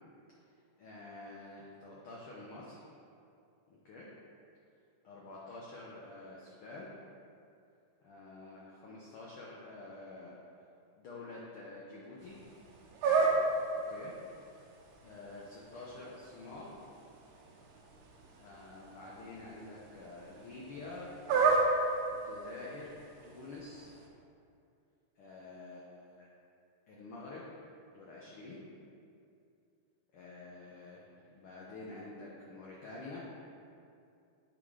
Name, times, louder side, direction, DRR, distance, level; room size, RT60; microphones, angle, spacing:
voice 1, 0.8-2.9 3.7-4.1 5.0-6.9 8.0-10.4 11.0-12.4 13.7-14.1 15.0-16.7 18.4-21.1 22.1-23.0 23.2-23.9 25.2-26.3 26.9-27.5 27.9-28.6 30.1-33.3, left 2 dB, 70° left, -5 dB, 1.3 m, -48 dB
sound 1, 12.2-24.1, right 3 dB, 70° right, 1.9 m, -35 dB
8.8 x 3.9 x 4.8 m, 2.5 s
omnidirectional pair, 3.4 m